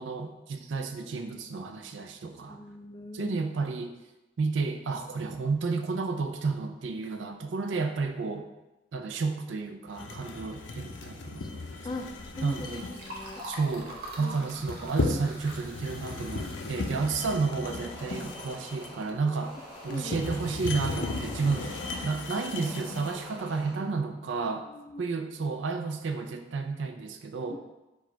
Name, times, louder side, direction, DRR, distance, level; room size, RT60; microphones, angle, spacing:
voice 1, 0.0-2.6 3.1-4.0 4.4-8.5 8.9-11.5 12.4-12.9 13.4-19.6 19.8-24.7 25.0-27.6, right 4 dB, 85° right, 6 dB, 0.4 m, -31 dB
voice 2, 2.5-3.4 10.0-10.3 11.4-11.5 11.8-12.1 12.4-13.4 14.2-14.7 19.9-20.3 24.6-25.0 27.5-27.6, left 2 dB, 25° left, 4 dB, 0.4 m, -41 dB
sound 1, 10.0-23.3, left 3 dB, 80° left, 0.5 m, -36 dB
Liquid, 11.8-18.5, right 1 dB, 55° right, 0.8 m, -45 dB
sound 2, 17.7-23.8, equal, ahead, 1.2 m, -46 dB
4.7 x 2.4 x 4.4 m, 1.0 s
head